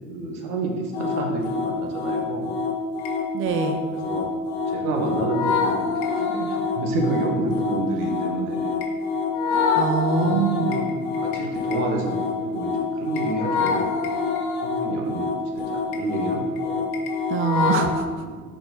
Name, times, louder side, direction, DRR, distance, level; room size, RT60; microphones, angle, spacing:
voice 1, 0.0-2.5 3.9-4.3 4.7-8.9 10.1-10.8 11.2-16.9 18.2-18.4, right 2 dB, 80° right, 1 dB, 1.4 m, -29 dB
sound 1, 0.9-18.0, left 4 dB, 65° left, 1.2 m, -26 dB
voice 2, 3.3-3.8 9.7-10.7 17.3-18.2, right 6 dB, 30° right, 7 dB, 0.5 m, -24 dB
5.8 x 4.5 x 5.3 m, 1.5 s
hypercardioid pair, 70°, 45 cm